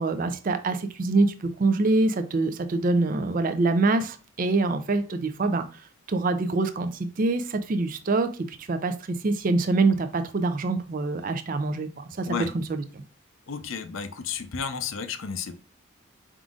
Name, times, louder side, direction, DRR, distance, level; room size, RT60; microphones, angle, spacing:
voice 1, 0.0-5.8 6.1-12.3 12.7-12.8, right 3 dB, 40° right, 0.4 m, -25 dB
voice 2, 13.5-15.6, left 6 dB, 70° left, 0.6 m, -32 dB
5.0 x 3.7 x 2.4 m
head